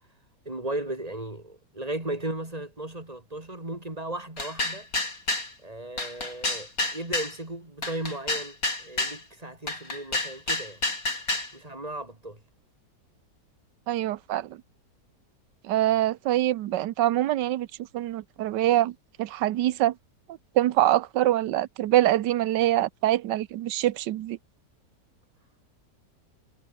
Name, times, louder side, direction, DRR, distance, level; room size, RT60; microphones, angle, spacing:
voice 1, 0.5-4.9 5.6-10.8 11.5-12.4, right 1 dB, 20° right, 4.0 m, -36 dB
sound 1, 4.4-5.5 6.0-7.3 7.8-9.2 9.7-11.5, left 2 dB, 55° left, 6.0 m, -29 dB
voice 2, 13.9-14.6 15.6-17.7 17.9-19.9 20.5-24.4, right 13 dB, 90° right, 1.4 m, -24 dB
omnidirectional pair, 1.8 m